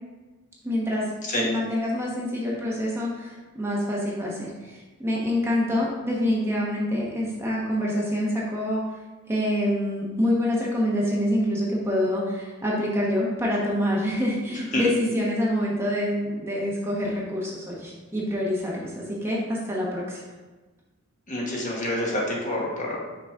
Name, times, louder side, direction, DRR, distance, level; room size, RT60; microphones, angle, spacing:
voice 1, 0.6-1.1 1.4-8.8 9.3-20.2, left 1 dB, 10° right, -4 dB, 1.0 m, -26 dB
voice 2, 21.3-23.0, left 1 dB, 35° left, -3 dB, 1.2 m, -27 dB
6.0 x 4.0 x 4.8 m, 1.2 s
head